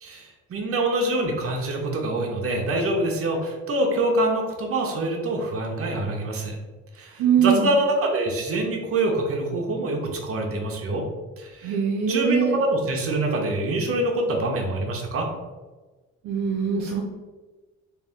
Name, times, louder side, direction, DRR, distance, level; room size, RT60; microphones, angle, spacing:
voice 1, 0.0-6.6 6.9-11.0 11.4-11.8 12.1-15.3, right 1 dB, 50° right, 1 dB, 0.9 m, -25 dB
voice 2, 7.2-7.7 11.6-12.6 16.2-17.0, right 7 dB, 75° right, 0 dB, 0.6 m, -22 dB
3.4 x 2.5 x 3.5 m, 1.3 s
cardioid pair, 90°, 30 cm